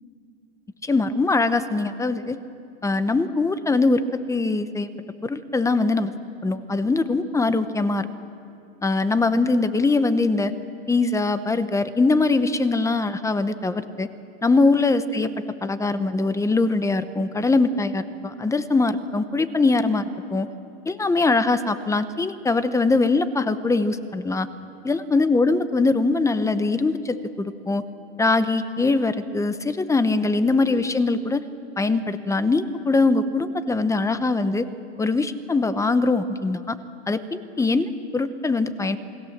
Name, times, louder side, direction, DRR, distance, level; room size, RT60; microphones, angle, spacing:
voice 1, 0.8-2.4 2.8-4.0 4.3-4.9 5.2-6.1 6.4-8.1 8.8-10.5 10.9-14.1 14.4-15.3 15.6-20.0 20.3-20.5 20.9-24.5 24.8-27.8 28.2-31.4 31.8-34.7 35.0-36.8 37.1-39.0, left 3 dB, 10° left, 12 dB, 0.8 m, -22 dB
28.5 x 19.0 x 7.3 m, 2.5 s
supercardioid pair, 135°, 32 cm